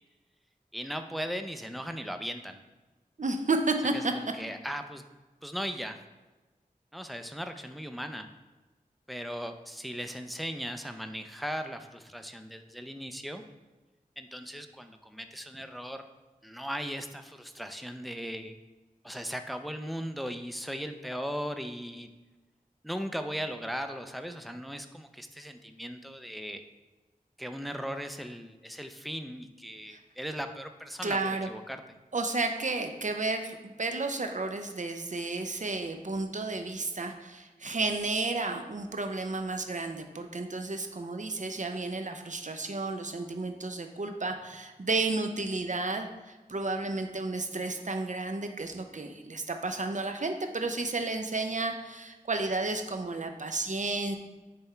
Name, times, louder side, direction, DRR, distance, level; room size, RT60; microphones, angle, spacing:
voice 1, 0.7-2.6 3.9-5.1 5.4-6.0 6.9-8.3 9.1-13.4 14.2-16.0 16.4-18.6 19.0-22.1 22.8-26.6 27.4-31.8, equal, ahead, 7 dB, 0.6 m, -38 dB
voice 2, 3.2-4.1 29.9-30.0 31.0-31.5 32.1-54.2, right 3 dB, 55° right, 5 dB, 0.7 m, -32 dB
9.4 x 3.5 x 4.4 m, 1.2 s
wide cardioid pair, 40°, 15 cm